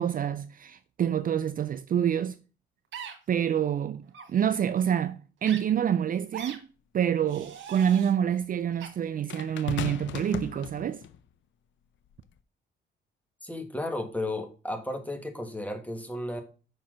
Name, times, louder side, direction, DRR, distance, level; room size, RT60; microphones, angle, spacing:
voice 1, 0.0-2.4 3.3-6.7 6.9-11.0, right 9 dB, 45° right, 0.4 m, -27 dB
sound 1, 2.9-3.1 4.1-4.3 5.4-5.6 6.3-6.6 7.2-8.1 8.8-8.9, right 8 dB, 70° right, 1.7 m, -40 dB
sound 2, 6.4-6.5 9.3-11.2 12.1-12.3, left 9 dB, 70° left, 0.6 m, -36 dB
voice 2, 13.4-16.4, left 1 dB, 5° left, 1.6 m, -34 dB
5.7 x 4.5 x 6.2 m
cardioid pair, 90°, 20 cm